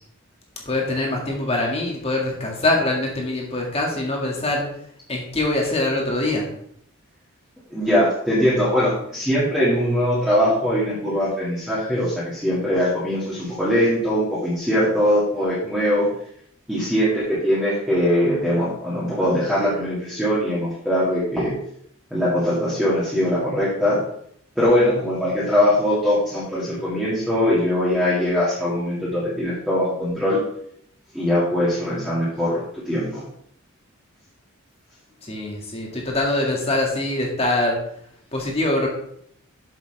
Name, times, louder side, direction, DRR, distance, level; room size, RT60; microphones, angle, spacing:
voice 1, 0.7-4.7 5.1-6.5 35.2-37.8 38.3-38.9, left 2 dB, 25° left, -1 dB, 1.9 m, -23 dB
voice 2, 7.7-16.1 16.7-21.5 22.1-24.0 24.6-30.4 31.1-33.2, equal, 5° right, -10 dB, 2.1 m, -21 dB
7.8 x 7.1 x 3.4 m, 0.69 s
head